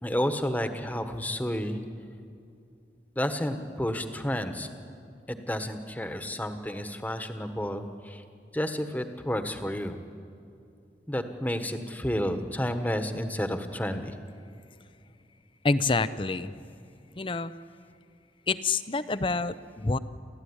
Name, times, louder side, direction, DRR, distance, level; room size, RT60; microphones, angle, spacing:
voice 1, 0.0-1.8 3.1-4.7 5.3-8.2 8.5-10.0 11.1-14.1, equal, 10° left, 8 dB, 1.3 m, -31 dB
voice 2, 15.6-16.5 17.2-17.5 18.5-20.0, left 3 dB, 30° left, 14 dB, 0.6 m, -27 dB
29.5 x 14.0 x 9.9 m, 2.6 s
head